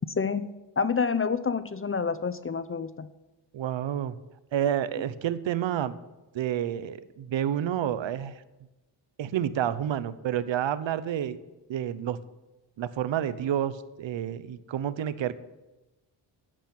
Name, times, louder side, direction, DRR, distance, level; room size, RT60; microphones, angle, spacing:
voice 1, 0.2-0.5 0.8-3.1, left 5 dB, 30° left, 14 dB, 0.6 m, -28 dB
voice 2, 3.5-4.2 4.5-5.9 6.3-8.3 9.2-11.4 11.7-12.2 12.8-15.3, right 10 dB, 80° right, 15 dB, 0.9 m, -29 dB
10.5 x 9.0 x 8.6 m, 1.0 s
cardioid pair, 90°, 45 cm